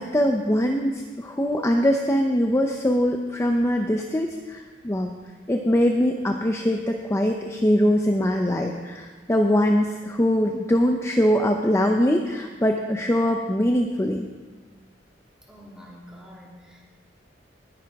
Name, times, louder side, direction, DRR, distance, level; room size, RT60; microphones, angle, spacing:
voice 1, 0.0-5.1 5.5-14.3, equal, 15° left, 3 dB, 0.6 m, -22 dB
voice 2, 15.5-16.8, equal, 5° right, -4 dB, 2.7 m, -46 dB
19.5 x 10.0 x 3.6 m, 1.4 s
head